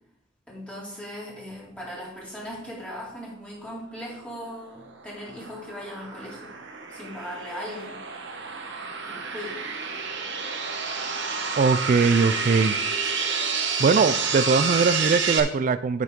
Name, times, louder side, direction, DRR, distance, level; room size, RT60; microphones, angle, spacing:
voice 1, 0.5-6.6 6.9-8.1 9.0-9.6, equal, 5° left, -6 dB, 2.5 m, -38 dB
sound 1, 4.6-15.4, right 5 dB, 65° right, 1.1 m, -29 dB
voice 2, 11.6-12.8 13.8-16.0, right 4 dB, 45° right, 13 dB, 0.3 m, -21 dB
9.8 x 6.0 x 3.7 m, 0.71 s
head